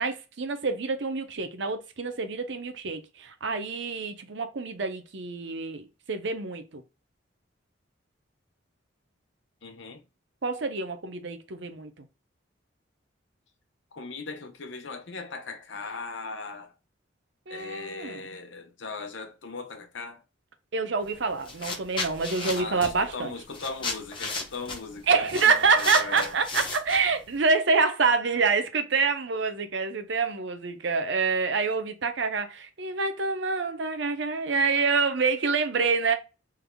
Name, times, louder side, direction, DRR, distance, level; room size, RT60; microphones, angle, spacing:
voice 1, 0.0-6.8 10.4-11.9 17.5-18.2 20.7-23.3 25.1-36.1, right 4 dB, 65° right, 0.7 m, -26 dB
voice 2, 9.6-10.0 13.9-16.7 17.5-20.2 22.5-26.4, left 4 dB, 70° left, 0.8 m, -39 dB
sound 1, 21.0-21.2 21.5-27.3, left 3 dB, 25° left, 0.8 m, -34 dB
3.4 x 3.4 x 2.2 m
head